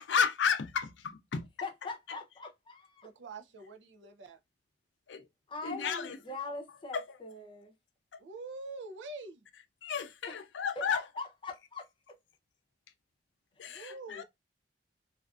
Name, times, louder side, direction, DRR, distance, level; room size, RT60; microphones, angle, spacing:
voice 1, 0.0-1.5 1.8-2.2 5.1-5.3 5.6-6.2 6.9-7.2 8.1-8.2 9.8-11.0 13.6-14.2, left 6 dB, 80° left, 0.5 m, -33 dB
voice 2, 1.6-3.1 5.5-7.7 10.8-11.8 13.6-13.8 14.1-14.2, left 3 dB, 25° left, 0.6 m, -42 dB
voice 3, 3.0-4.4 8.2-9.4 13.7-14.2, right 3 dB, 80° right, 0.5 m, -45 dB
2.4 x 2.4 x 2.3 m
head